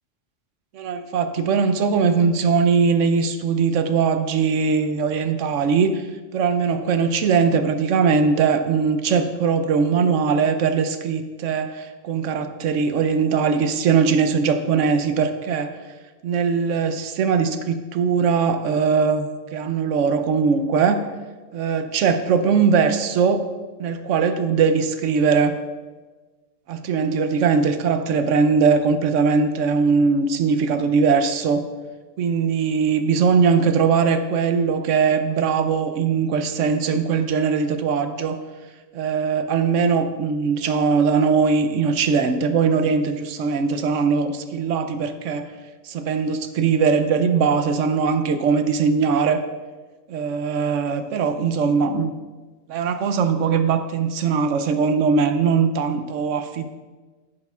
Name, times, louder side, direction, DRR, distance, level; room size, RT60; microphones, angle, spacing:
voice 1, 0.7-6.1 6.3-15.7 16.2-21.0 21.5-23.4 23.8-25.5 26.7-31.6 32.2-38.4 38.9-45.5 45.8-49.4 50.1-52.1 52.7-56.6, right 5 dB, 75° right, 9 dB, 0.9 m, -20 dB
11.0 x 8.6 x 2.4 m, 1.3 s
omnidirectional pair, 1.3 m